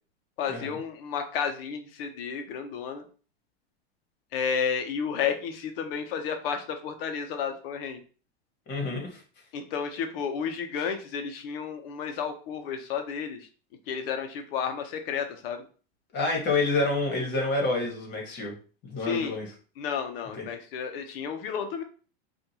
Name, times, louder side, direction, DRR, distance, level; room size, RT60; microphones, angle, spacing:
voice 1, 0.4-3.0 4.3-8.0 9.5-13.5 13.9-15.6 19.0-19.4 19.8-21.8, left 7 dB, 60° left, 6 dB, 0.8 m, -32 dB
voice 2, 8.7-9.2 10.8-10.9 16.1-18.5 18.8-19.5 20.3-20.5, left 3 dB, 35° left, 0 dB, 1.7 m, -28 dB
5.0 x 2.6 x 2.9 m, 0.38 s
supercardioid pair, 135°, 32 cm